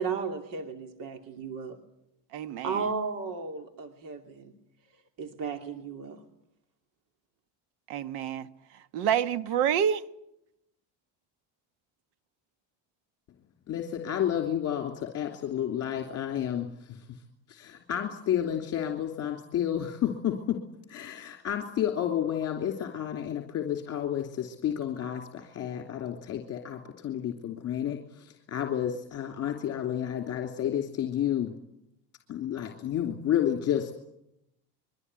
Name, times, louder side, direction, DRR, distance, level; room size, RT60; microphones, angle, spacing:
voice 1, 0.0-1.8 2.6-4.5 5.2-6.2, right 5 dB, 55° right, 2.8 m, -34 dB
voice 2, 2.3-2.8 7.9-8.5 8.9-10.0, right 9 dB, 75° right, 1.4 m, -27 dB
voice 3, 13.7-17.2 17.5-20.6 20.9-31.5 32.3-33.9, left 10 dB, 40° left, 3.1 m, -31 dB
25.5 x 23.0 x 9.8 m
cardioid pair, 145°, 40 cm